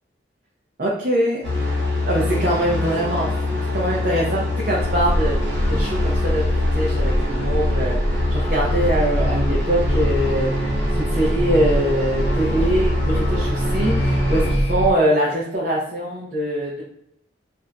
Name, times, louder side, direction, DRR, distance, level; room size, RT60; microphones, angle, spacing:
voice 1, 0.8-1.4 2.0-5.3 5.7-8.0 8.3-10.5 11.0-16.8, right 1 dB, 50° right, -5 dB, 0.6 m, -23 dB
sound 1, 1.4-14.5, left 2 dB, 70° right, 1.0 m, -25 dB
sound 2, 4.8-14.9, equal, 85° left, 0.9 m, -23 dB
2.6 x 2.2 x 3.7 m, 0.76 s
head